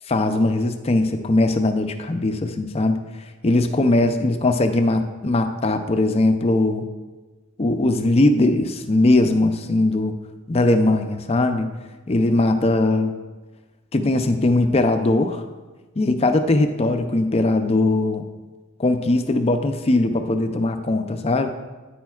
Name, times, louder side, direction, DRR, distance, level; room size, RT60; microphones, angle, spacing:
voice 1, 0.1-3.0 3.4-6.9 7.6-10.2 10.5-11.7 12.1-13.1 13.9-15.4 16.0-18.3 18.8-21.5, left 2 dB, 30° left, 8 dB, 0.5 m, -20 dB
9.1 x 8.7 x 2.4 m, 1.2 s
head